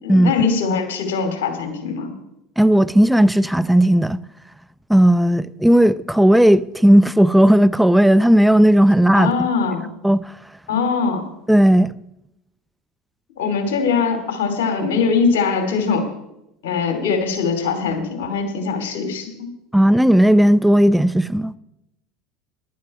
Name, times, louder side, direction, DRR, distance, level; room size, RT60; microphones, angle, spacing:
voice 1, 0.0-2.1 9.1-9.9 10.7-11.2 13.4-16.1 16.6-19.5, left 5 dB, 80° left, 2.6 m, -21 dB
voice 2, 2.6-4.2 4.9-9.3 10.0-10.3 11.5-11.9 19.7-21.5, right 1 dB, 5° right, 0.5 m, -14 dB
15.0 x 11.5 x 4.2 m
supercardioid pair, 95°, 0 cm